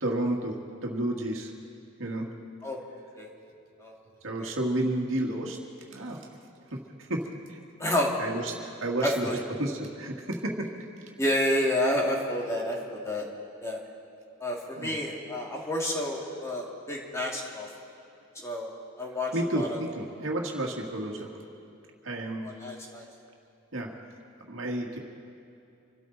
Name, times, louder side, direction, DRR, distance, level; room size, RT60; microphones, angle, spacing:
voice 1, 0.0-1.5 2.0-2.3 4.2-5.6 5.9-6.2 6.7-7.6 8.2-9.3 9.6-10.7 14.8-15.0 19.3-21.3 22.0-22.5 23.7-23.9 24.5-25.0, right 1 dB, 75° right, 0 dB, 2.0 m, -31 dB
voice 2, 7.8-8.1 9.0-9.4 11.2-13.3 13.6-13.8 14.4-17.7 18.4-18.7 19.0-19.8 22.4-23.0, left 1 dB, 15° left, -2 dB, 2.2 m, -29 dB
26.5 x 13.0 x 4.0 m, 2.7 s
head